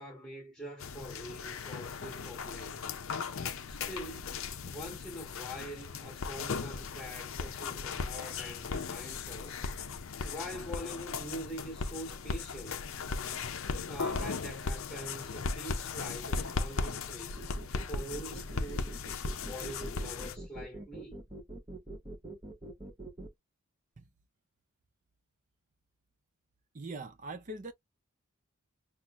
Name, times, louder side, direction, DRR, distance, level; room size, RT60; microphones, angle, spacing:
voice 1, 0.0-2.9 3.7-4.4 4.7-9.6 10.2-12.9 13.9-17.5 17.9-19.0 19.4-21.2, equal, ahead, 1.4 m, -44 dB
sound 1, 0.8-20.4, left 4 dB, 65° left, 0.5 m, -37 dB
sound 2, 17.4-23.3, right 1 dB, 20° right, 0.8 m, -43 dB
voice 2, 26.7-27.7, right 2 dB, 35° right, 0.5 m, -41 dB
5.9 x 2.0 x 2.4 m
head